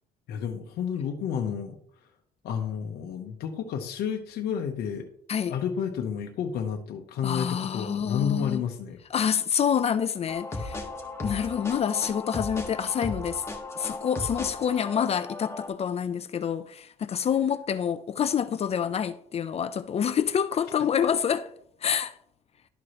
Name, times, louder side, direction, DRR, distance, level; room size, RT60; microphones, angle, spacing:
voice 1, 0.3-1.8 2.4-5.1 5.5-9.0, left 7 dB, 70° left, 0.8 m, -31 dB
voice 2, 7.2-8.6 9.1-10.8 11.2-13.4 13.8-21.5 21.8-22.1, left 8 dB, 40° left, 0.4 m, -27 dB
sound 1, 10.3-15.7, left 2 dB, 15° left, 1.5 m, -36 dB
12.0 x 4.7 x 2.9 m
cardioid pair, 110°, 17 cm